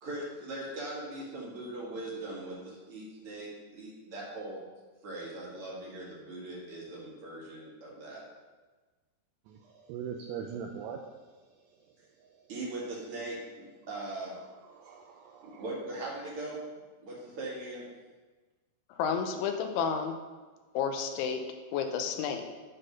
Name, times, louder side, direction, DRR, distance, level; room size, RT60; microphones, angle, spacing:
voice 1, 0.0-4.6 5.0-8.2 12.5-14.4 15.4-16.6 17.0-17.9, right 2 dB, 50° right, -5 dB, 1.7 m, -40 dB
voice 2, 9.5-12.5 14.3-15.7, right 7 dB, 85° right, 2 dB, 2.4 m, -43 dB
voice 3, 19.0-20.2 20.7-21.4 21.7-22.4, left 6 dB, 85° left, 6 dB, 3.0 m, -31 dB
11.5 x 4.0 x 5.3 m, 1.3 s
omnidirectional pair, 5.4 m